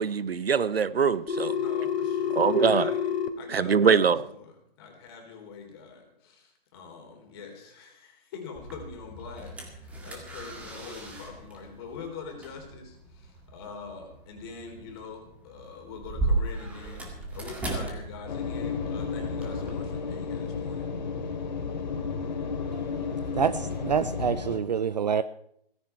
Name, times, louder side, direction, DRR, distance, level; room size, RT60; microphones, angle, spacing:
voice 1, 0.0-1.5 2.4-2.9 3.5-4.2, right 6 dB, 80° right, 1.1 m, -23 dB
Telephone, 1.3-3.3, left 8 dB, 85° left, 2.8 m, -28 dB
voice 2, 1.5-20.9, left 5 dB, 25° left, 3.6 m, -44 dB
sound 1, 8.5-19.7, right 2 dB, 5° right, 1.9 m, -36 dB
sound 2, 18.3-24.6, left 5 dB, 50° left, 2.9 m, -32 dB
voice 3, 23.3-25.2, right 7 dB, 45° right, 0.5 m, -27 dB
17.0 x 16.0 x 4.6 m
hypercardioid pair, 160°, 30 cm